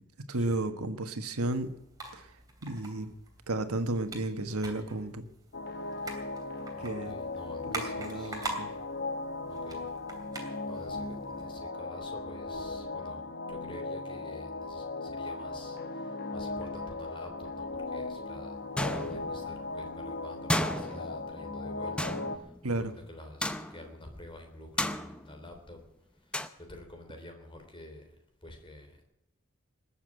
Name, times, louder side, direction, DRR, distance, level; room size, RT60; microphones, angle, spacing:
voice 1, 0.3-1.8 2.1-2.3 2.6-3.1 3.5-5.3 6.8-7.1 7.7-8.7 22.6-22.9, right 2 dB, 85° right, 9 dB, 1.4 m, -33 dB
sound 1, 1.4-11.5, right 2 dB, 15° right, 2.9 m, -44 dB
sound 2, 5.5-22.4, left 3 dB, 50° left, 0.9 m, -38 dB
voice 2, 6.7-8.5 9.5-9.9 10.6-18.6 18.9-25.8 26.2-29.0, left 1 dB, 25° left, 4 dB, 3.4 m, -49 dB
sound 3, 18.8-19.6 20.5-21.6 22.0-22.9 23.4-24.0 24.8-25.6 26.3-26.5, left 1 dB, 5° left, 0.7 m, -33 dB
20.0 x 7.3 x 8.9 m, 0.86 s
head